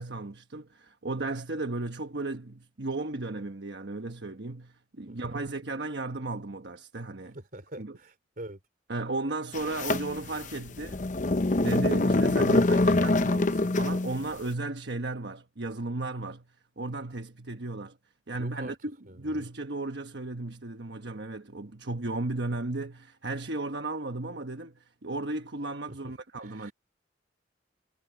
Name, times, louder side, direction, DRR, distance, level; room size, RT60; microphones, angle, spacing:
voice 1, 0.0-7.4 7.8-8.0 8.9-11.0 11.6-16.4 16.8-18.0 18.3-26.7, right 2 dB, 65° right, 1.2 m, -35 dB
voice 2, 5.1-5.4 7.3-8.6 18.4-18.7 19.1-19.5 25.9-26.0 26.4-26.7, right 1 dB, 50° right, 3.5 m, -44 dB
sound 1, 9.5-14.2, left 2 dB, 45° left, 0.8 m, -25 dB
head